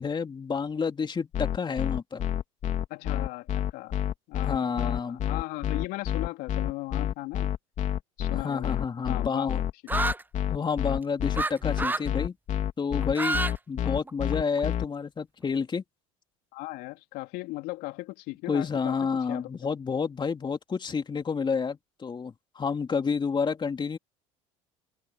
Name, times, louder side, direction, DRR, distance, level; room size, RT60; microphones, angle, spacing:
voice 1, 0.0-2.2 4.5-5.2 8.3-9.6 10.5-12.3 12.8-13.4 13.7-15.8 18.5-24.0, left 5 dB, 30° left, 2.9 m, -29 dB
sound 1, 1.3-14.8, left 10 dB, 50° left, 3.3 m, -28 dB
voice 2, 2.9-7.5 8.2-9.5 16.5-19.0 19.3-19.7, left 20 dB, 65° left, 3.4 m, -38 dB
sound 2, 9.9-10.2 11.4-11.5 11.8-12.1 13.0-13.5 13.8-14.6, right 2 dB, 10° right, 1.0 m, -28 dB
hypercardioid pair, 75°, 17 cm